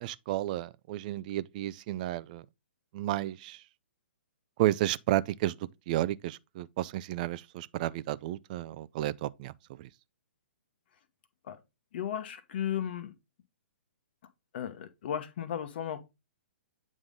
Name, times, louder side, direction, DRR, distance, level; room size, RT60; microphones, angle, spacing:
voice 1, 0.0-2.4 2.9-3.6 4.6-5.5 5.9-9.5 9.8-9.9, right 14 dB, 40° right, 0.4 m, -32 dB
voice 2, 11.9-13.1 14.5-16.1, left 9 dB, 55° left, 1.0 m, -35 dB
8.1 x 3.7 x 3.7 m
hypercardioid pair, 130°, 7 cm